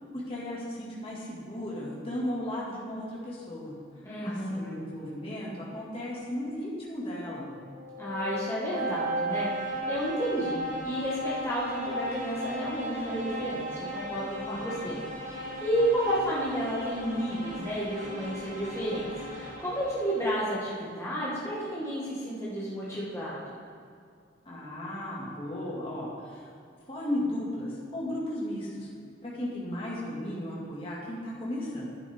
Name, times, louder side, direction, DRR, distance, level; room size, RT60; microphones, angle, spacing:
voice 1, 0.1-3.7 4.2-7.5 14.5-14.9 24.5-26.5 26.9-28.9 29.2-31.9, left 1 dB, 30° left, -6 dB, 2.2 m, -35 dB
voice 2, 4.0-4.8 8.0-9.5 9.9-15.0 15.2-23.6, equal, 15° left, -8 dB, 1.7 m, -31 dB
sound 1, 7.5-20.4, equal, 45° right, 2.4 m, -36 dB
11.0 x 9.0 x 3.6 m, 2.3 s
head